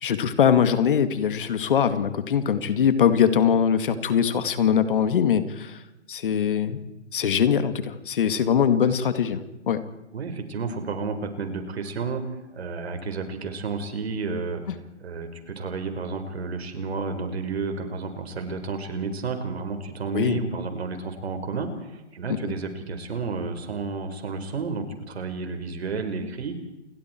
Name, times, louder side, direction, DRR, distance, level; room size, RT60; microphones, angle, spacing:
voice 1, 0.0-5.8 6.1-6.8 7.1-9.8 14.7-14.8 20.1-20.4 22.3-22.5, left 8 dB, 45° left, 11 dB, 2.2 m, -22 dB
voice 2, 10.1-14.6 15.0-26.6, right 4 dB, 60° right, 6 dB, 5.0 m, -31 dB
29.5 x 22.0 x 4.6 m, 0.97 s
hypercardioid pair, 155°, 36 cm